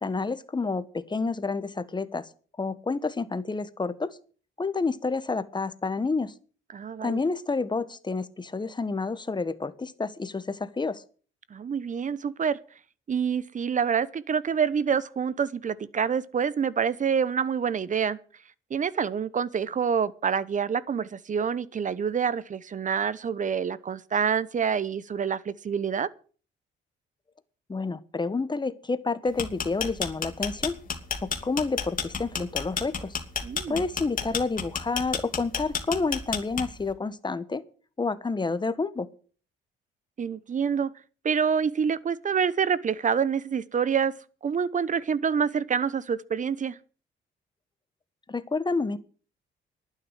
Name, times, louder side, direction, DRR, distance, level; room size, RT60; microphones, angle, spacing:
voice 1, 0.0-2.3 2.6-4.2 4.6-6.3 7.0-11.0 27.7-30.8 31.2-33.2 33.7-37.6 38.0-39.1 48.3-49.0, left 4 dB, 20° left, 1.3 m, -29 dB
voice 2, 6.7-7.2 11.5-12.6 13.1-18.2 18.7-26.1 33.4-33.8 40.2-40.9 41.2-44.1 44.4-46.8, right 7 dB, 40° right, 1.0 m, -27 dB
sound 1, 29.3-36.9, left 6 dB, 45° left, 2.7 m, -30 dB
11.5 x 9.5 x 8.1 m
cardioid pair, 90°, 20 cm